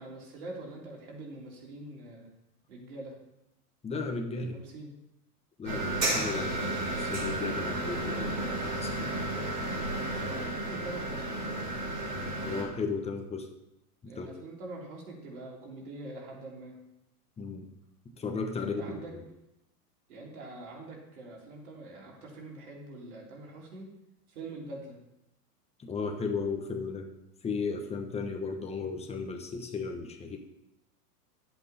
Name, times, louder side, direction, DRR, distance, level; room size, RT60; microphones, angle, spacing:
voice 1, 0.0-2.3 2.7-3.2 4.5-4.9 10.2-11.4 14.0-16.8 18.5-19.1 20.1-23.9 24.3-25.0, right 2 dB, 65° right, -1 dB, 3.5 m, -44 dB
voice 2, 3.8-4.6 5.6-8.4 8.6-9.1 12.4-13.5 14.0-14.3 17.4-17.7 18.0-19.2 25.8-27.1 27.4-30.4, left 4 dB, 15° left, 4 dB, 1.1 m, -35 dB
sound 1, 5.6-12.6, right 1 dB, 85° right, 4.7 m, -32 dB
11.0 x 8.1 x 4.3 m, 0.86 s
hypercardioid pair, 130°, 47 cm